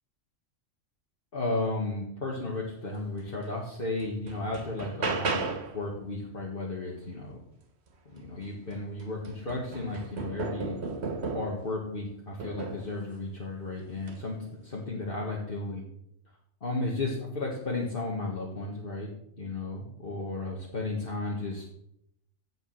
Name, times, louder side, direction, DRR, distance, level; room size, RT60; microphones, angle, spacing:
voice 1, 1.3-7.4 8.1-10.8 11.3-15.8 16.6-19.1 19.4-21.6, left 2 dB, 45° left, -3 dB, 2.0 m, -34 dB
sound 1, 3.4-3.5 4.0-5.8 8.2-8.3 8.7-11.7 12.4-12.9 14.0-14.2, right 4 dB, 60° right, 1.5 m, -35 dB
15.5 x 5.3 x 6.5 m, 0.74 s
omnidirectional pair, 1.3 m